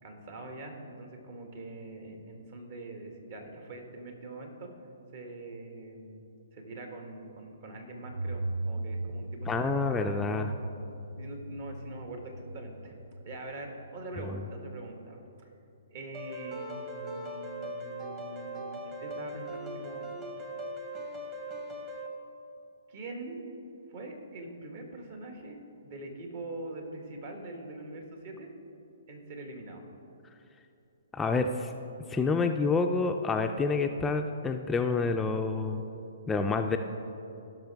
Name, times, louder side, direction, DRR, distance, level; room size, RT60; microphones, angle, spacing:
voice 1, 0.0-4.7 5.1-6.2 6.5-10.3 11.1-12.9 13.2-15.5 15.9-20.1 21.0-21.1 22.9-23.4 23.9-28.5 29.1-29.8, right 2 dB, 50° right, 2 dB, 1.7 m, -43 dB
sound 1, 8.0-14.6, right 2 dB, 75° right, 0.5 m, -38 dB
voice 2, 9.5-10.5 14.3-14.4 31.1-31.7 32.1-35.8 36.3-36.8, left 4 dB, 10° left, 4 dB, 0.4 m, -28 dB
sound 2, 16.1-22.1, right 1 dB, 30° right, 1.4 m, -39 dB
16.0 x 6.1 x 3.5 m, 2.8 s
figure-of-eight pair, 130°, 0 cm